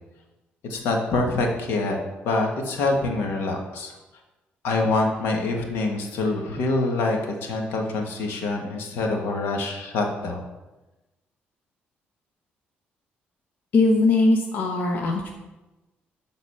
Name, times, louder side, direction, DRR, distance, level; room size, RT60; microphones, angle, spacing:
voice 1, 0.6-3.9 4.6-10.4, left 2 dB, 85° left, 2 dB, 1.5 m, -25 dB
voice 2, 13.7-15.3, left 2 dB, 55° left, 1 dB, 1.0 m, -20 dB
11.0 x 4.0 x 5.6 m, 1.1 s
cardioid pair, 145°, 4 cm